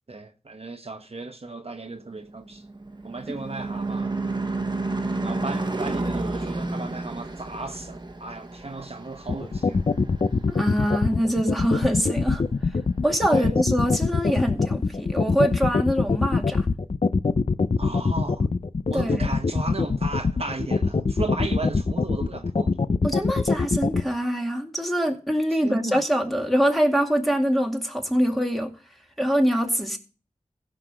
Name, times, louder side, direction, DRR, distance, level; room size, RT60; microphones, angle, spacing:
voice 1, 0.1-2.6 3.0-4.1 5.2-9.8 13.3-13.5 17.8-18.5 18.9-22.7 25.5-26.0, right 3 dB, 55° right, 1.0 m, -35 dB
Car passing by / Truck / Engine, 2.3-11.0, right 2 dB, 35° right, 1.1 m, -31 dB
sound 1, 9.3-24.0, left 4 dB, 55° left, 0.6 m, -22 dB
voice 2, 10.5-12.4 13.0-16.7 18.9-19.3 23.0-28.7 29.2-30.0, equal, ahead, 2.2 m, -24 dB
15.5 x 5.9 x 5.1 m
wide cardioid pair, 40°, 12 cm